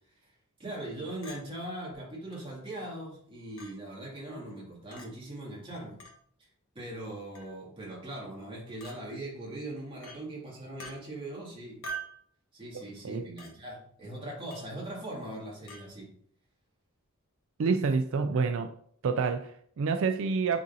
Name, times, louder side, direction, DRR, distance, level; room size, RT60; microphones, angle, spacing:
voice 1, 0.6-6.0 6.7-11.8 12.5-16.1, right 1 dB, 25° right, -4 dB, 2.3 m, -40 dB
Chink clink, 1.2-1.4 2.3-2.4 3.6-3.7 4.9-5.1 6.0-6.2 7.3-7.6 8.8-9.0 10.0-10.2 10.8-11.0 11.8-12.2 13.4-13.5 14.5-14.7 15.7-15.8, right 3 dB, 80° left, 1.2 m, -42 dB
voice 2, 12.7-13.3 17.6-18.7 19.0-20.6, right 4 dB, 65° right, 7 dB, 0.4 m, -28 dB
9.5 x 4.0 x 2.7 m, 0.62 s
head